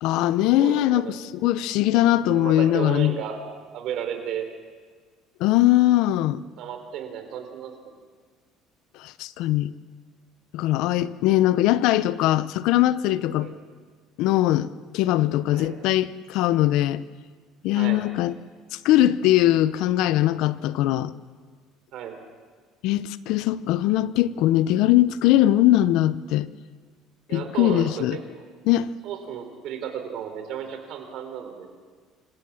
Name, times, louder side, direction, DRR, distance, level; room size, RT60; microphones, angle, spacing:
voice 1, 0.0-1.1 1.4-3.1 5.4-6.4 9.0-9.7 10.5-13.5 14.2-17.0 17.6-18.3 18.7-21.1 22.8-26.5 27.3-28.2 28.7-28.9, left 14 dB, 75° left, 0.7 m, -21 dB
voice 2, 0.6-1.2 2.3-3.4 3.7-4.5 6.6-7.9 13.4-13.6 15.5-15.8 17.7-18.1 21.9-22.2 27.3-28.4 29.0-31.7, right 8 dB, 65° right, 3.9 m, -33 dB
27.5 x 16.0 x 7.3 m
cardioid pair, 125°, 0 cm